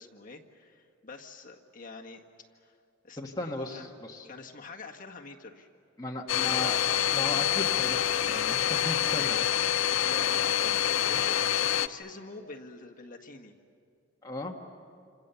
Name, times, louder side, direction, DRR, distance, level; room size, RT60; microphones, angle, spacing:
voice 1, 0.0-2.2 2.5-2.7 3.0-3.9 4.2-5.7 6.4-6.8 9.0-9.5 10.0-13.5, left 3 dB, 40° left, 1 dB, 1.7 m, -45 dB
voice 2, 3.2-4.3 6.0-6.8 7.1-9.4 14.2-14.6, left 2 dB, 20° left, -1 dB, 1.4 m, -36 dB
Domestic sounds home sounds, 6.3-11.9, left 11 dB, 85° left, 0.7 m, -26 dB
28.5 x 27.0 x 7.0 m, 2.4 s
head